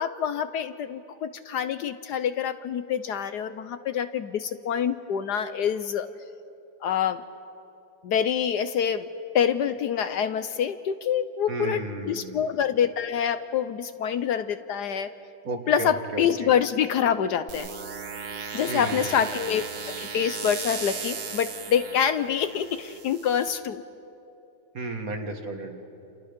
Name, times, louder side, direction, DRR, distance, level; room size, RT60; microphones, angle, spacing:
voice 1, 0.0-6.1 6.8-7.2 8.0-9.1 9.3-15.1 15.7-17.7 18.5-23.8, left 8 dB, 70° left, 11 dB, 1.2 m, -26 dB
voice 2, 11.5-12.5 15.4-16.5 18.7-19.2 24.7-25.8, right 2 dB, 50° right, 5 dB, 2.1 m, -33 dB
sound 1, 17.5-23.5, right 5 dB, 70° right, 2.2 m, -36 dB
29.0 x 28.5 x 5.2 m, 2.7 s
omnidirectional pair, 2.0 m